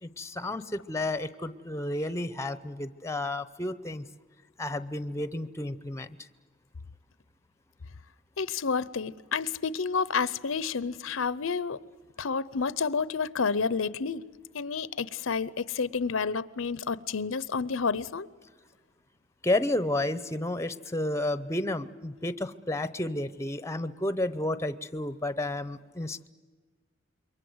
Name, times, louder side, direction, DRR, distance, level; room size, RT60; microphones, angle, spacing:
voice 1, 0.0-4.1 4.6-6.1 19.4-26.3, left 1 dB, 15° left, 0.8 m, -31 dB
voice 2, 8.4-11.8 12.2-14.2 14.5-18.3, left 5 dB, 75° left, 0.7 m, -30 dB
27.5 x 23.0 x 8.0 m
head